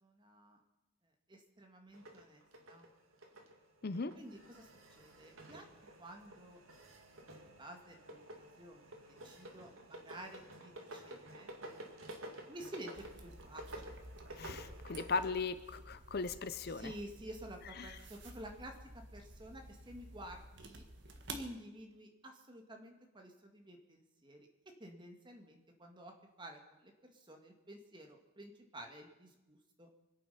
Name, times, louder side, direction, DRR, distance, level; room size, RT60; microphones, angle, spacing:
voice 1, 0.0-0.6 1.3-2.9 4.2-5.7 6.0-6.6 7.4-8.9 9.2-11.5 12.5-14.0 16.7-20.8 21.3-24.5 24.8-26.1 26.4-29.9, right 1 dB, 25° right, 3 dB, 1.8 m, -51 dB
sound 1, 1.9-15.2, right 1 dB, 75° right, 2.2 m, -52 dB
voice 2, 3.8-4.1 14.4-16.9 17.8-17.9, left 4 dB, 50° left, 12 dB, 0.6 m, -38 dB
sound 2, 12.9-21.5, right 2 dB, 55° right, 1.6 m, -52 dB
25.0 x 8.8 x 5.7 m, 1.0 s
head